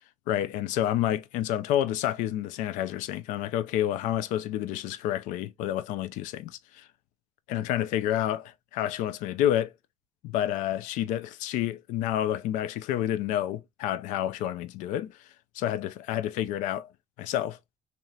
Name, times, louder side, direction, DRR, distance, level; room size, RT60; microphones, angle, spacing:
voice 1, 0.3-6.9 7.5-9.7 10.2-15.2 15.6-16.9 17.2-17.6, left 12 dB, 90° left, 0.4 m, -29 dB
3.2 x 2.9 x 2.2 m
cardioid pair, 95°, 13 cm